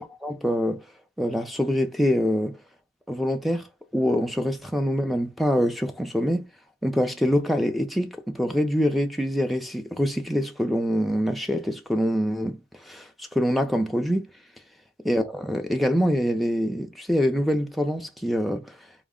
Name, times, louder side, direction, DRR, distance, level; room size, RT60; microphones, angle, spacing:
voice 1, 0.2-0.8 1.2-2.6 3.1-3.6 3.9-6.4 6.8-14.3 15.1-18.8, equal, ahead, 0.4 m, -25 dB
4.8 x 2.1 x 3.6 m
head